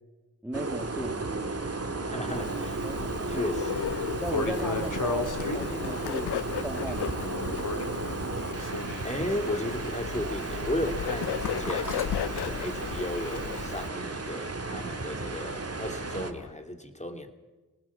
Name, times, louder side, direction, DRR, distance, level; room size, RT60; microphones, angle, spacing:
voice 1, 0.4-1.3 2.8-3.4 4.2-7.4, right 1 dB, 5° right, 3 dB, 2.1 m, -36 dB
sound 1, 0.5-16.3, right 3 dB, 40° right, 1.9 m, -34 dB
sound 2, 0.6-16.5, left 3 dB, 55° left, 2.4 m, -39 dB
voice 2, 2.0-3.0 3.3-3.9 9.0-17.3, left 1 dB, 20° left, 6 dB, 3.1 m, -35 dB
Bird, 2.3-13.9, left 10 dB, 85° left, 0.6 m, -36 dB
25.0 x 19.0 x 7.3 m, 1.2 s
cardioid pair, 45°, 38 cm